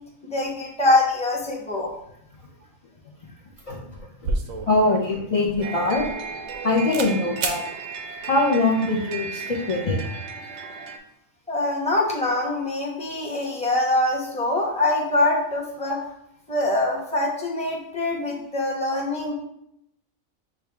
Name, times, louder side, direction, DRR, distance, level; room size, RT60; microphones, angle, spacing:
voice 1, 0.2-1.9 11.5-16.0 16.5-19.3, left 2 dB, 5° left, -4 dB, 0.7 m, -24 dB
sound 1, 3.5-3.6 3.9-6.6 6.9-7.1 7.4-7.6, right 3 dB, 85° right, 1.1 m, -31 dB
voice 2, 4.7-6.0 6.6-7.6 8.3-10.0, left 2 dB, 40° left, -3 dB, 0.5 m, -22 dB
sound 2, 5.6-11.0, right 5 dB, 65° right, 0.8 m, -35 dB
6.6 x 2.4 x 3.3 m, 0.76 s
omnidirectional pair, 1.4 m